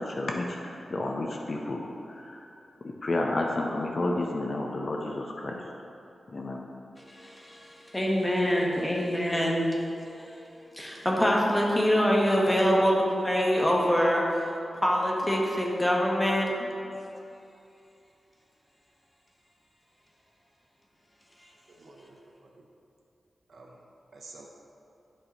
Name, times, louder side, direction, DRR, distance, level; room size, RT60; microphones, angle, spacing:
voice 1, 0.0-2.5 2.8-5.6 6.3-6.6, left 2 dB, 50° left, 0 dB, 0.6 m, -31 dB
voice 2, 7.0-14.5 14.8-16.7 21.4-21.5, equal, 15° left, -2 dB, 1.0 m, -25 dB
voice 3, 21.7-22.7 23.5-23.8 24.1-24.5, right 3 dB, 65° right, -2 dB, 0.7 m, -50 dB
8.3 x 5.7 x 2.9 m, 2.8 s
cardioid pair, 75°, 0 cm